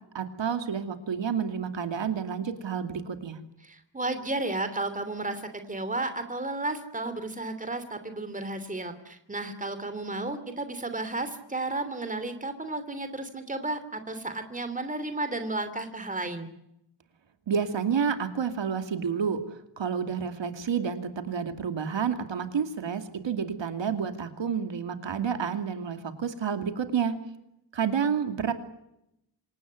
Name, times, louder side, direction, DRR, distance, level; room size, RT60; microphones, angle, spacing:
voice 1, 0.1-3.4 17.5-27.2 27.7-28.5, right 7 dB, 70° right, 8 dB, 2.7 m, -29 dB
voice 2, 3.6-5.4 5.7-16.5, right 2 dB, 15° right, 10 dB, 3.0 m, -33 dB
27.0 x 18.0 x 9.5 m, 0.81 s
wide cardioid pair, 175°, 46 cm